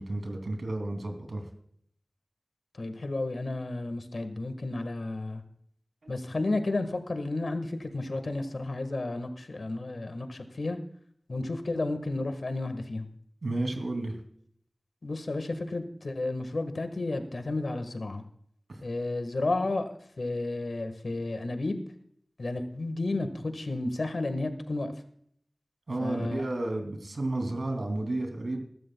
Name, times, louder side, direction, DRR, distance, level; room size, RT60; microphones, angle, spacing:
voice 1, 0.0-1.4 6.0-6.1 13.4-14.1 18.7-18.8 25.9-28.6, right 2 dB, 85° right, 4 dB, 2.7 m, -32 dB
voice 2, 2.8-5.4 6.1-10.8 11.3-13.0 15.0-18.2 18.8-21.8 22.4-24.9 26.0-26.4, left 2 dB, 80° left, 8 dB, 1.5 m, -32 dB
22.0 x 12.5 x 2.3 m, 0.66 s
wide cardioid pair, 50°, 0 cm